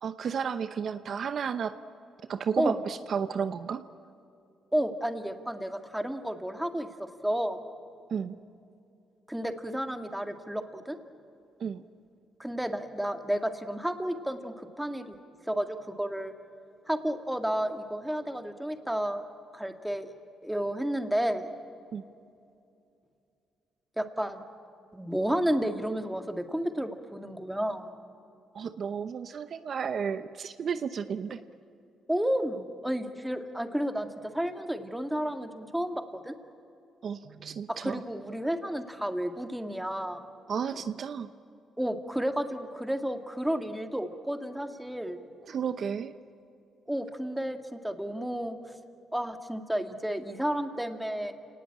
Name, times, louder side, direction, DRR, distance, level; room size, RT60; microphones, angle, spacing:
voice 1, 0.0-1.7 2.3-3.8 8.1-8.3 11.6-11.8 21.9-22.0 28.5-31.4 37.0-38.0 40.5-41.3 45.5-46.1, right 7 dB, 55° right, 11 dB, 0.8 m, -32 dB
voice 2, 4.7-7.6 9.3-11.0 12.4-15.2 15.5-16.3 16.9-19.2 19.5-20.1 20.4-21.5 24.0-24.4 24.9-27.9 32.1-36.3 37.7-40.2 41.8-45.2 46.9-48.6 49.1-51.3, equal, 5° right, 6 dB, 1.9 m, -31 dB
29.5 x 19.0 x 8.8 m, 2.6 s
cardioid pair, 90°, 0 cm